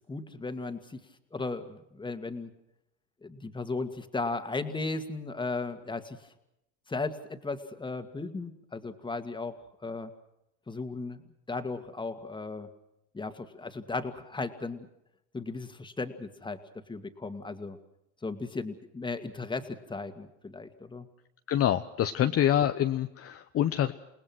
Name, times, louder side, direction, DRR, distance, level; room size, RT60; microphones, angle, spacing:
voice 1, 0.1-1.0 1.3-2.5 3.2-6.2 6.9-10.1 10.7-11.2 11.5-12.7 13.1-14.9 15.3-16.6 16.9-17.8 18.2-21.1, left 3 dB, 15° left, 8 dB, 2.3 m, -36 dB
voice 2, 21.5-23.9, left 11 dB, 40° left, 7 dB, 1.1 m, -26 dB
29.0 x 19.0 x 6.2 m, 0.84 s
supercardioid pair, 95°, 35 cm